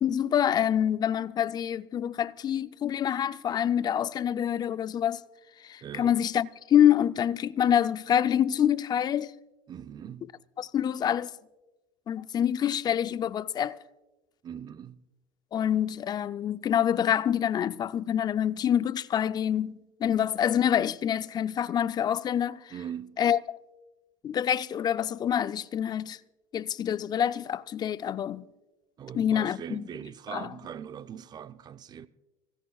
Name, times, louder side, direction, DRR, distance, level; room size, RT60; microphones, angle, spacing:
voice 1, 0.0-5.2 5.6-9.3 10.6-11.3 12.1-13.8 15.5-22.6 23.2-23.4 24.2-26.2 26.5-28.5 29.1-29.9 30.3-30.5, left 9 dB, 35° left, 0.5 m, -26 dB
voice 2, 5.8-6.2 9.7-10.3 14.4-15.0 22.7-23.2 29.0-32.1, right 8 dB, 35° right, 0.6 m, -41 dB
25.0 x 16.5 x 2.3 m
supercardioid pair, 100°, 12 cm